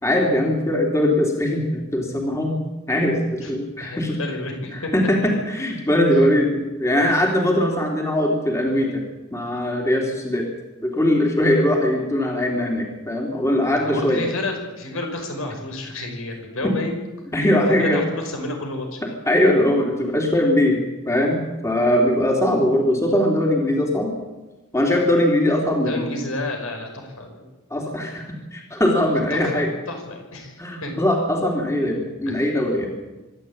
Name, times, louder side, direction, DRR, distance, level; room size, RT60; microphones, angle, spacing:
voice 1, 0.0-2.6 2.9-4.2 4.9-9.0 9.3-10.5 10.8-14.2 16.6-16.7 17.3-18.0 19.2-24.1 24.7-26.1 27.7-28.2 28.5-29.7 30.6-33.0, left 1 dB, 15° left, 0 dB, 3.2 m, -20 dB
voice 2, 3.8-4.9 13.8-17.0 17.7-19.1 25.8-27.5 29.3-30.9 32.3-32.4, left 2 dB, 75° left, 3 dB, 5.6 m, -31 dB
25.0 x 12.5 x 8.9 m, 1.1 s
head